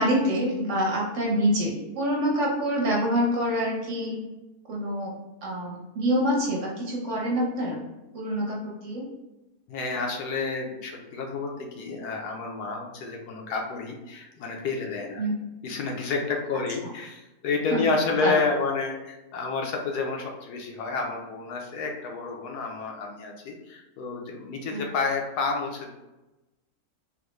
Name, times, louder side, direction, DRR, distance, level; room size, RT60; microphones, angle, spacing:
voice 1, 0.0-4.2 4.7-5.1 5.4-7.8 8.1-9.0 15.2-15.3 17.7-17.8 18.2-18.3 24.7-24.9, equal, 55° right, -3 dB, 1.1 m, -26 dB
voice 2, 9.7-15.2 15.6-25.9, left 4 dB, 90° left, 1 dB, 1.2 m, -30 dB
3.7 x 2.1 x 3.0 m, 1.0 s
omnidirectional pair, 1.6 m